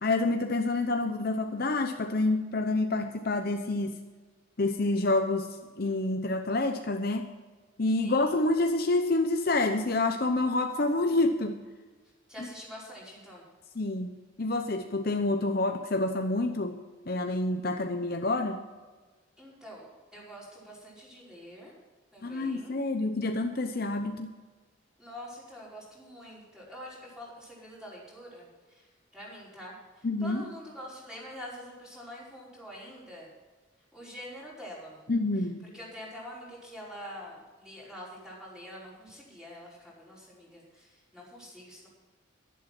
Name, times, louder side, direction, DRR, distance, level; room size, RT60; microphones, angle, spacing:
voice 1, 0.0-4.0 4.6-7.3 7.8-11.6 12.4-12.5 13.8-16.8 17.1-18.6 22.2-24.3 30.0-30.5 35.1-35.7, left 2 dB, 50° left, 6 dB, 0.8 m, -28 dB
voice 2, 8.0-8.4 12.3-13.4 19.4-19.9 20.1-21.7 22.1-22.7 25.0-28.5 29.1-29.7 30.2-33.3 33.9-35.0 35.7-39.7 40.0-40.6 41.1-41.9, equal, 5° right, -6 dB, 5.1 m, -45 dB
12.0 x 11.0 x 6.0 m, 1.3 s
head